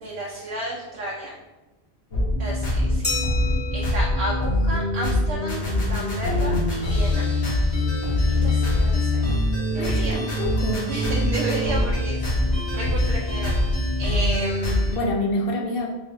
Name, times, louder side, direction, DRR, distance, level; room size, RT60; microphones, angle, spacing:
voice 1, 0.0-1.4 2.4-3.1 3.7-5.6 5.9-7.3 8.3-9.3 9.7-10.2 10.9-13.6 14.0-15.0, right 1 dB, 75° right, -4 dB, 0.8 m, -32 dB
sound 1, 2.1-15.0, left 1 dB, 90° left, 1.3 m, -23 dB
Glass, 3.0-5.5, left 2 dB, 15° left, 0.5 m, -33 dB
voice 2, 9.8-10.9 14.9-15.9, left 2 dB, 65° left, 0 dB, 0.7 m, -27 dB
4.0 x 2.7 x 2.6 m, 1.1 s
omnidirectional pair, 1.1 m